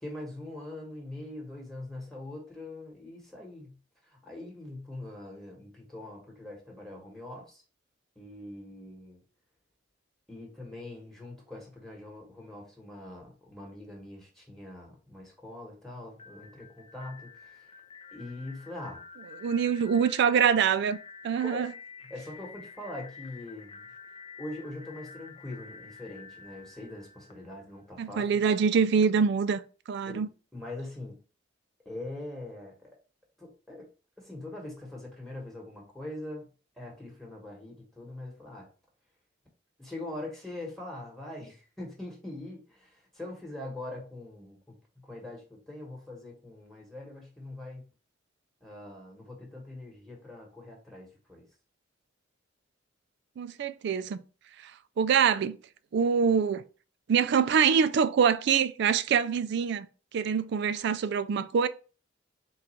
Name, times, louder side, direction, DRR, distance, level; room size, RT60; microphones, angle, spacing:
voice 1, 0.0-3.7 4.1-7.6 8.1-9.2 10.3-17.7 18.1-19.0 21.4-21.6 22.1-23.9 24.4-28.2 30.0-30.2 30.5-31.2 31.8-32.9 33.4-33.9 34.2-36.4 36.8-38.7 39.8-44.7 45.0-47.8 48.6-51.4, left 1 dB, ahead, 1.1 m, -42 dB
sound 1, 16.1-28.0, left 5 dB, 30° left, 0.4 m, -49 dB
voice 2, 19.4-21.0 21.2-21.7 28.0-29.6 29.9-30.3 53.4-54.2 54.6-55.6 55.9-56.6 57.1-59.9 60.1-61.7, right 6 dB, 60° right, 0.3 m, -25 dB
3.8 x 2.3 x 4.2 m
head